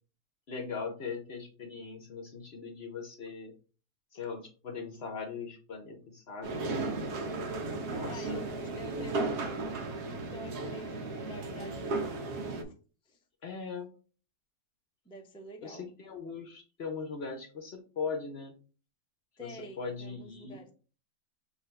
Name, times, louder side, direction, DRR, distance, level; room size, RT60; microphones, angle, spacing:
voice 1, 0.5-3.5 4.1-7.1 7.9-8.4 13.4-13.9 15.6-18.5 19.4-20.6, left 5 dB, 55° left, 4 dB, 0.8 m, -40 dB
sound 1, 6.4-12.6, right 3 dB, 80° right, 1.4 m, -35 dB
voice 2, 6.7-7.3 8.0-12.2 12.7-12.8 13.0-13.2 15.0-15.9 19.4-20.7, right 1 dB, 5° left, 1 dB, 0.3 m, -48 dB
6.4 x 2.6 x 3.2 m, 0.37 s
omnidirectional pair, 1.6 m